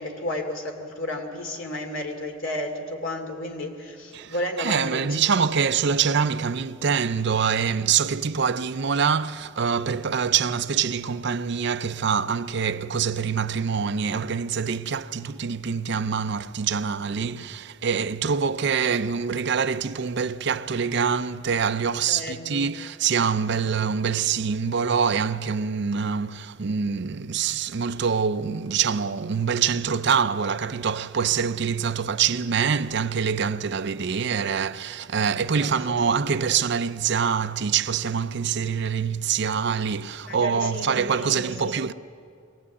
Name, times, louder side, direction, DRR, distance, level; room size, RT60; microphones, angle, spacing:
voice 1, 0.0-5.3 22.1-22.7 23.6-23.7 35.4-36.0 40.2-41.8, left 1 dB, 65° left, 2.7 m, -33 dB
voice 2, 4.1-41.9, right 6 dB, 55° right, 0.5 m, -25 dB
23.5 x 18.0 x 8.4 m
head